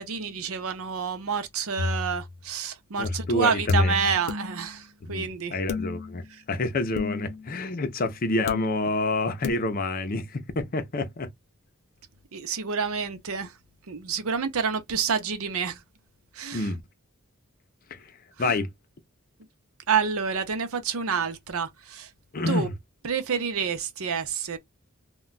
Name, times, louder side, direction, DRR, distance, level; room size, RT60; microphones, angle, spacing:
voice 1, 0.0-5.6 12.3-13.5 13.9-15.8 16.4-16.7 18.4-18.5 19.9-22.1 22.5-22.7 23.0-24.6, right 6 dB, 75° right, 0.6 m, -28 dB
sound 1, 1.8-2.3 3.0-4.9 5.7-6.3 7.0-7.6 8.5-9.1 9.4-9.5, left 3 dB, 90° left, 0.8 m, -30 dB
voice 2, 3.0-4.1 5.0-11.3 16.5-16.8 17.9-18.0 18.4-18.7 22.3-22.7, left 2 dB, 40° left, 0.6 m, -28 dB
2.2 x 2.2 x 3.8 m
head